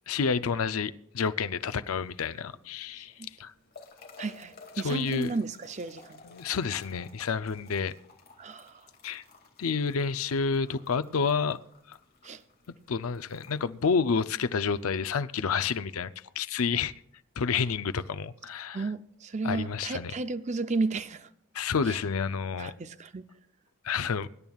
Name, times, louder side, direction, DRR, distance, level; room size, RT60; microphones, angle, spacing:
voice 1, 0.1-3.1 3.4-3.5 4.8-5.3 6.2-7.9 9.0-9.2 9.6-11.6 11.9-12.0 12.9-16.9 17.4-18.9 19.4-20.1 21.5-22.7 23.8-24.3, left 5 dB, 80° left, 0.5 m, -29 dB
sound 1, 1.9-14.9, left 4 dB, 45° left, 2.3 m, -55 dB
voice 2, 4.2-6.2 8.4-8.8 12.2-12.4 18.7-21.3 21.9-22.0 22.6-23.2, right 3 dB, 30° right, 0.5 m, -33 dB
24.5 x 10.5 x 2.4 m
head